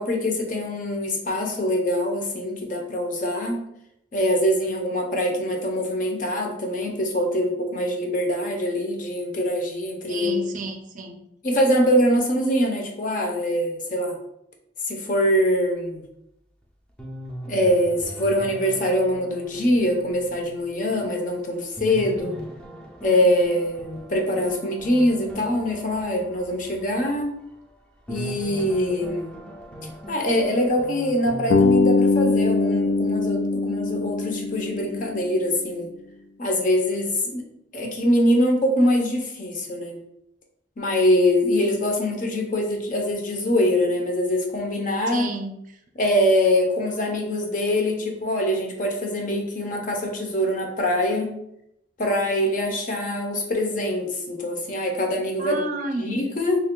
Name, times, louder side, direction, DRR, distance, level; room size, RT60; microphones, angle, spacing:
voice 1, 0.0-3.6 4.1-10.3 11.4-14.2 14.9-16.0 17.5-22.3 23.0-27.3 28.1-29.3 30.1-35.9 36.4-37.5 37.7-40.0 40.8-45.3 46.0-51.4 52.0-55.6 56.0-56.6, equal, 50° left, 2 dB, 0.7 m, -23 dB
voice 2, 10.1-11.2 45.1-45.6 55.4-56.3, right 2 dB, 45° right, 5 dB, 0.4 m, -31 dB
sound 1, 16.6-16.7 17.0-21.2 21.6-27.7 28.1-31.7, equal, 5° left, 0.5 m, -39 dB
Bass guitar, 31.5-35.6, left 3 dB, 75° left, 0.3 m, -22 dB
3.2 x 2.4 x 3.6 m, 0.78 s
head